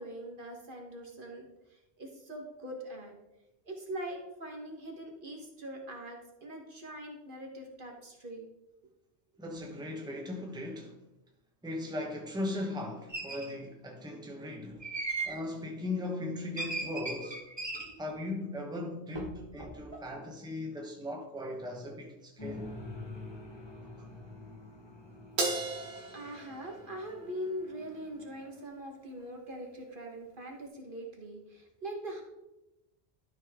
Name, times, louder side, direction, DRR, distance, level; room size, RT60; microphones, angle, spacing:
voice 1, 0.0-3.1 3.6-8.5 26.1-32.2, right 1 dB, 55° right, 1.6 m, -42 dB
voice 2, 9.4-11.0 11.6-14.9 15.2-17.4 18.0-22.7 24.0-24.1, left 2 dB, 5° right, 1.1 m, -38 dB
sound 1, 13.1-13.5 14.8-15.4 16.6-17.9 19.1-19.3 19.6-20.0, right 3 dB, 25° right, 1.3 m, -37 dB
sound 2, 22.4-28.6, left 2 dB, 25° left, 1.1 m, -47 dB
Crash cymbal, 25.4-27.9, right 3 dB, 80° right, 1.4 m, -36 dB
12.0 x 5.4 x 3.6 m
omnidirectional pair, 1.1 m